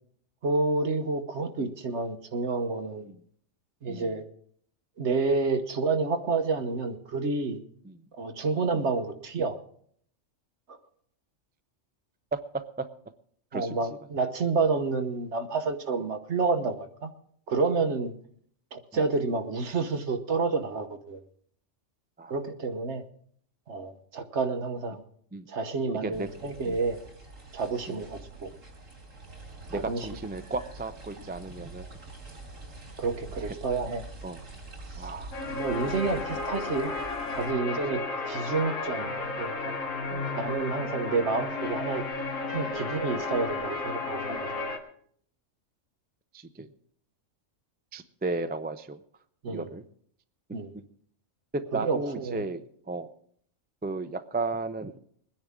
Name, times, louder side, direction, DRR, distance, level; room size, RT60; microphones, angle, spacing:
voice 1, 0.4-3.1 3.8-4.2 5.0-7.6 8.2-9.6 10.7-10.8 13.5-17.1 17.5-18.1 18.7-21.2 22.3-23.0 23.7-25.0 25.5-27.0 27.5-28.5 29.7-30.1 33.0-34.0 35.0-35.1 35.4-36.9 37.3-38.0 38.3-39.7 40.4-42.0 42.5-44.4 49.4-49.7 50.5-50.7 51.7-52.4, right 4 dB, 60° right, 7 dB, 1.4 m, -29 dB
sound 1, 26.1-37.5, right 2 dB, 80° right, 2.8 m, -45 dB
voice 2, 29.7-31.9 34.2-34.4 35.0-35.4 40.1-40.3 46.3-46.7 47.9-49.0 49.5-49.8 51.5-53.1 53.8-54.9, right 3 dB, 15° right, 9 dB, 0.3 m, -34 dB
sound 2, 35.3-44.8, left 3 dB, 85° left, 2.3 m, -33 dB
21.5 x 10.0 x 3.6 m, 0.63 s
omnidirectional pair, 1.3 m